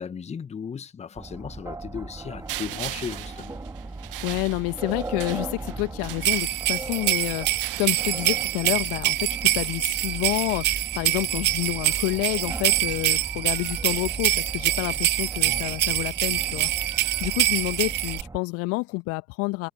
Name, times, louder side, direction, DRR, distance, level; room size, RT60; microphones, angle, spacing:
voice 1, 0.0-3.6, left 7 dB, 20° left, 1.8 m, -36 dB
sound 1, 1.2-18.4, right 3 dB, 10° right, 4.2 m, -37 dB
sound 2, 2.5-6.9 7.5-8.8, right 14 dB, 70° right, 1.7 m, -39 dB
voice 2, 4.2-19.7, left 27 dB, 50° left, 1.8 m, -29 dB
sound 3, 6.2-18.2, right 16 dB, 35° right, 0.7 m, -25 dB
figure-of-eight pair, 75°, 29 cm